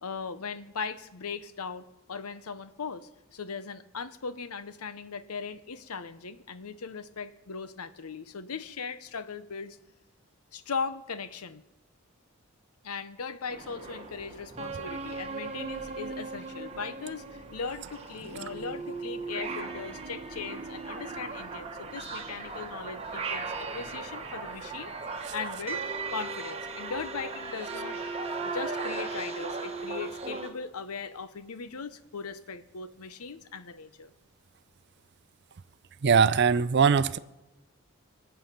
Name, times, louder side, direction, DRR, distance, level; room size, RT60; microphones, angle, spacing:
voice 1, 0.0-9.8 10.5-11.6 12.8-17.3 17.5-24.9 25.3-25.8 26.1-28.0 28.4-34.1, left 5 dB, 90° left, 0.8 m, -38 dB
sound 1, 13.5-30.5, right 4 dB, 25° right, 1.2 m, -37 dB
voice 2, 36.0-37.2, right 6 dB, 50° right, 0.5 m, -21 dB
23.5 x 7.9 x 5.8 m
head